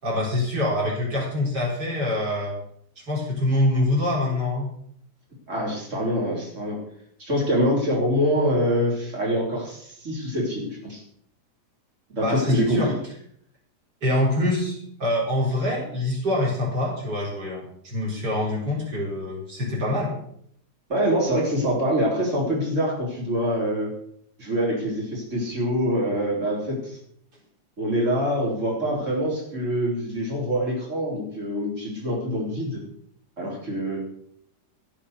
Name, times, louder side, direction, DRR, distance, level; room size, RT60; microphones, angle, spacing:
voice 1, 0.0-2.5 3.0-4.7 12.2-12.9 14.0-20.1, left 1 dB, 90° right, -4 dB, 4.8 m, -25 dB
voice 2, 5.5-6.8 7.2-11.0 12.1-13.0 20.9-23.9 24.4-27.0 27.8-32.8 33.4-34.0, equal, 45° right, -4 dB, 4.3 m, -25 dB
14.5 x 7.5 x 6.8 m, 0.69 s
omnidirectional pair, 1.8 m